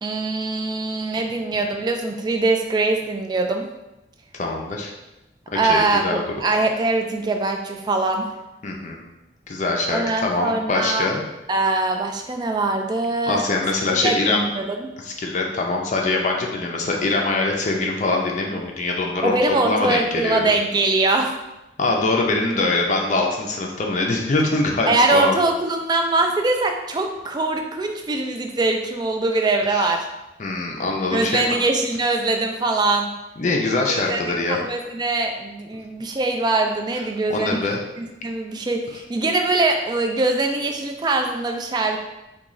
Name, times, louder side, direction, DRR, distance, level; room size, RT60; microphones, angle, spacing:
voice 1, 0.0-3.7 5.5-8.3 9.9-11.1 11.5-13.4 14.0-14.9 19.2-21.3 24.9-30.1 31.1-33.1 33.9-37.6 38.0-42.0, right 2 dB, 25° right, 4 dB, 0.3 m, -22 dB
voice 2, 4.3-4.9 5.6-6.2 8.6-9.0 9.5-11.2 13.3-14.5 15.0-19.3 19.7-20.4 21.8-25.4 29.7-29.9 30.4-31.6 33.4-34.6 37.3-37.8, left 2 dB, 45° left, 0 dB, 0.4 m, -23 dB
3.0 x 2.3 x 3.6 m, 0.97 s
head